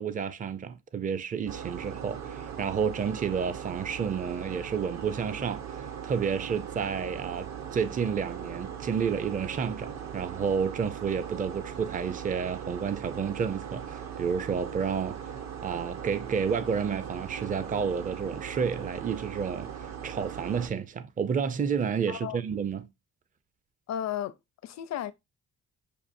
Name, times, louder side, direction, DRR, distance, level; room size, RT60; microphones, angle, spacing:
voice 1, 0.0-15.2 15.6-22.9, right 6 dB, 25° right, 0.5 m, -30 dB
sound 1, 1.5-20.7, right 8 dB, 65° right, 0.9 m, -39 dB
voice 2, 22.1-22.4 23.9-24.4 24.6-25.1, left 10 dB, 65° left, 0.5 m, -33 dB
6.7 x 2.4 x 2.6 m
cardioid pair, 90°, 30 cm